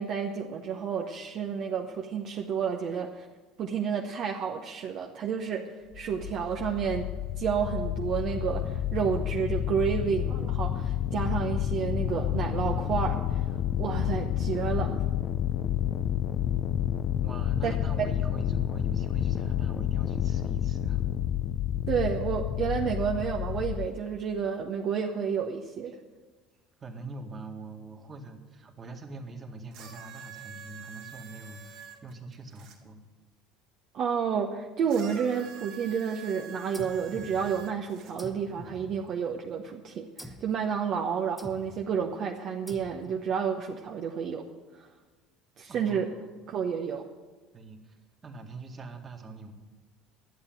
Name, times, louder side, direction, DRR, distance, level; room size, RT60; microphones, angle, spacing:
voice 1, 0.0-3.3 3.6-13.2 13.8-15.1 17.6-17.7 21.9-26.0 33.9-44.5 44.7-44.9 45.6-46.1 46.5-47.1, right 7 dB, 55° right, 1 dB, 0.9 m, -30 dB
sound 1, 5.9-23.9, left 11 dB, 50° left, 0.6 m, -30 dB
voice 2, 17.2-21.1 25.9-26.0 26.8-33.0 45.7-46.3 47.5-49.5, right 3 dB, 30° right, 4 dB, 1.8 m, -43 dB
sound 2, 29.7-32.8 34.9-38.1 39.1-39.2, right 6 dB, 70° right, 2.2 m, -46 dB
sound 3, 36.7-37.8 38.2-39.5 40.2-40.6 41.4-41.9 42.7-43.3, equal, 5° left, 1.1 m, -46 dB
11.5 x 8.0 x 7.7 m, 1.4 s
hypercardioid pair, 80°, 0 cm